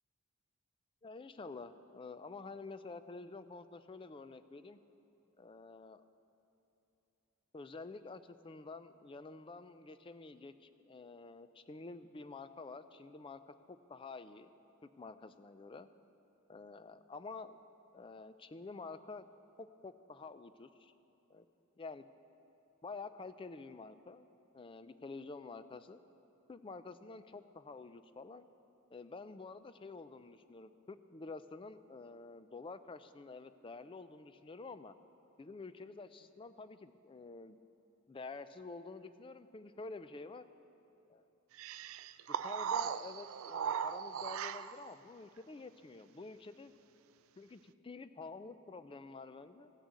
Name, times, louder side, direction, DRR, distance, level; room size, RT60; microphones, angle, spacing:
voice 1, 1.0-4.8 5.4-6.0 7.5-14.5 14.8-15.9 16.5-17.6 17.9-19.3 19.6-20.9 21.3-21.5 21.8-22.1 22.8-24.3 24.5-26.0 26.5-28.5 28.9-34.9 35.4-37.6 38.1-40.4 41.1-41.2 42.3-46.7 47.4-49.7, left 3 dB, 25° left, 12 dB, 0.4 m, -49 dB
sound 1, 41.6-44.9, right 8 dB, 70° right, 0.3 m, -38 dB
15.5 x 6.3 x 8.3 m, 2.9 s
head